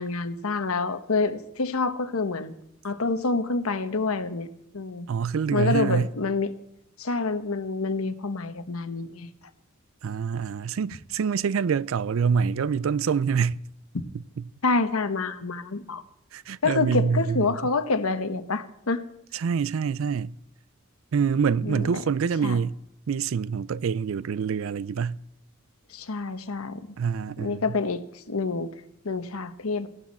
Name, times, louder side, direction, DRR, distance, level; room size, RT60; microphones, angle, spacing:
voice 1, 0.0-2.5 2.8-4.5 4.7-5.1 5.5-6.5 7.0-9.3 14.6-16.0 16.6-19.0 21.6-21.9 22.4-22.6 25.9-26.8 27.4-28.7 29.0-29.9, left 3 dB, 80° left, 1.1 m, -27 dB
voice 2, 5.1-6.1 10.0-13.6 16.3-17.6 19.3-20.3 21.1-22.8 23.1-25.2 27.0-27.6, right 6 dB, 65° right, 0.4 m, -26 dB
16.0 x 12.0 x 4.3 m
head